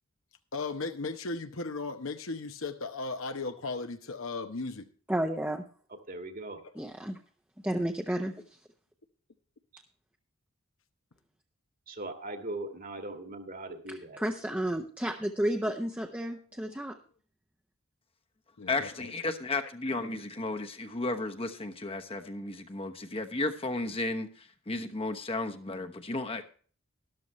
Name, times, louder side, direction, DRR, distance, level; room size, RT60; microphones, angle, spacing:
voice 1, 0.5-4.9 16.7-16.8 18.6-19.1, left 3 dB, 65° left, 7 dB, 1.0 m, -36 dB
voice 2, 5.1-5.6 6.8-7.2 7.6-8.3 13.9-17.0, right 1 dB, 5° right, 3 dB, 0.8 m, -32 dB
voice 3, 6.1-6.6 9.7-9.8 11.9-14.2, right 2 dB, 40° right, 7 dB, 1.8 m, -40 dB
voice 4, 18.7-26.5, left 2 dB, 25° left, 6 dB, 1.0 m, -34 dB
13.0 x 12.5 x 3.1 m, 0.43 s
head